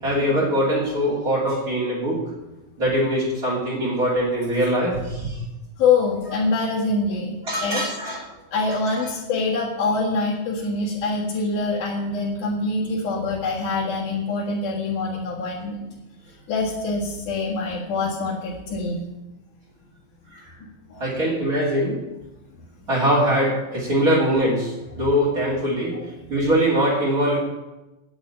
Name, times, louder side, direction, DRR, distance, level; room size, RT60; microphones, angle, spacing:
voice 1, 0.0-2.2 2.8-5.4 7.5-8.2 9.0-9.1 20.3-20.4 21.0-22.0 22.9-25.9 26.3-27.4, equal, 25° right, -10 dB, 3.2 m, -22 dB
voice 2, 5.8-7.9 8.5-15.8 16.3-19.0 20.9-21.0 25.9-26.0, left 3 dB, 65° left, -7 dB, 3.2 m, -25 dB
10.5 x 7.2 x 8.8 m, 1.0 s
omnidirectional pair, 3.9 m